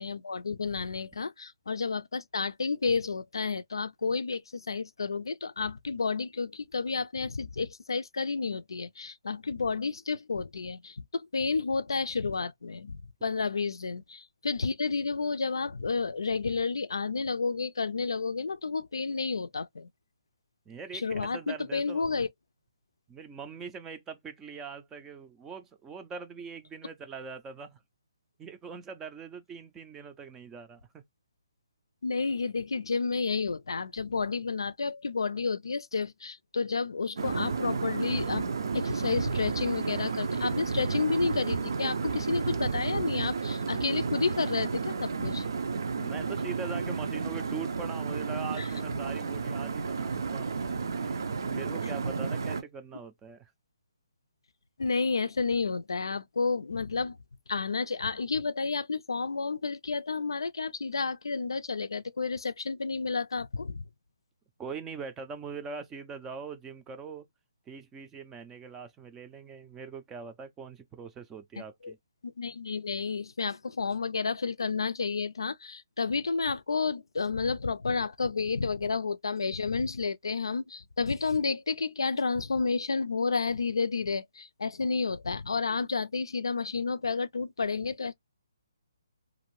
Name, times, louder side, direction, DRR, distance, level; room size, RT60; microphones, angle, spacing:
voice 1, 0.0-19.9 20.9-22.3 32.0-45.5 48.6-48.7 54.8-57.2 57.5-63.8 71.8-71.9 72.2-88.1, left 4 dB, 85° left, 0.4 m, -31 dB
voice 2, 20.7-22.2 23.1-27.8 28.4-31.0 46.0-50.5 50.9-53.5 64.6-67.3 67.7-72.0, right 5 dB, 10° right, 0.4 m, -42 dB
sound 1, 37.2-52.6, right 5 dB, 65° right, 0.5 m, -32 dB
2.6 x 2.5 x 3.0 m
hypercardioid pair, 155°, 2 cm